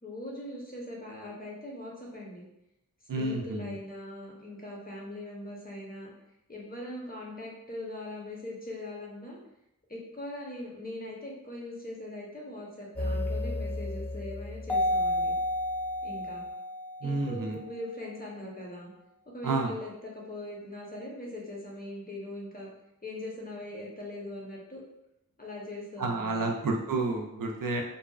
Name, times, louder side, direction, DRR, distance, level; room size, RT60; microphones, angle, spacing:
voice 1, 0.0-2.4 3.2-6.1 6.5-9.4 9.9-15.3 16.0-16.4 17.0-18.9 19.3-22.7 23.0-24.8 25.4-26.5, left 1 dB, 25° left, -3 dB, 0.7 m, -41 dB
voice 2, 3.1-3.8 17.0-17.6 19.4-19.7 26.0-27.8, right 3 dB, 80° right, 1 dB, 0.5 m, -30 dB
sound 1, 13.0-17.6, left 1 dB, 5° left, 0.3 m, -31 dB
2.6 x 2.2 x 2.3 m, 0.83 s
wide cardioid pair, 50°, 32 cm